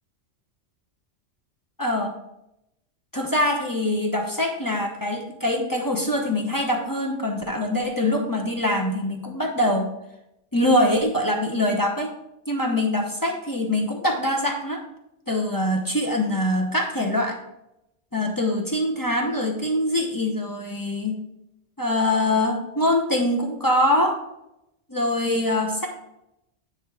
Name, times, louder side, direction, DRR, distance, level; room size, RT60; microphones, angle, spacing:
voice 1, 1.8-2.2 3.1-9.9 10.5-12.1 12.5-14.8 15.3-17.4 18.1-21.2 21.8-24.2 24.9-25.9, left 1 dB, 20° left, -1 dB, 0.9 m, -23 dB
9.4 x 3.2 x 5.8 m, 0.86 s
omnidirectional pair, 1.2 m